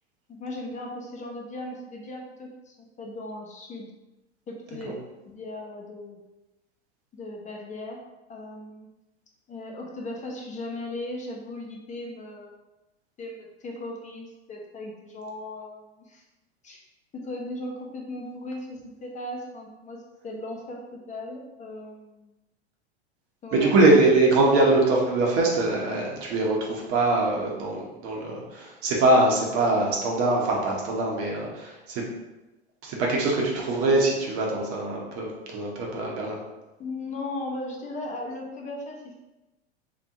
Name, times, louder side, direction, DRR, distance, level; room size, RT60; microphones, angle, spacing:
voice 1, 0.3-3.9 4.5-5.0 5.2-6.2 7.1-8.0 8.3-8.9 9.5-12.6 13.2-16.2 16.6-16.8 17.1-22.3 23.4-23.7 36.8-39.1, left 2 dB, 20° left, 0 dB, 0.9 m, -37 dB
voice 2, 23.5-32.0 32.8-36.4, right 2 dB, 45° right, -2 dB, 1.1 m, -23 dB
3.5 x 2.9 x 3.6 m, 1.0 s
hypercardioid pair, 100°, 33 cm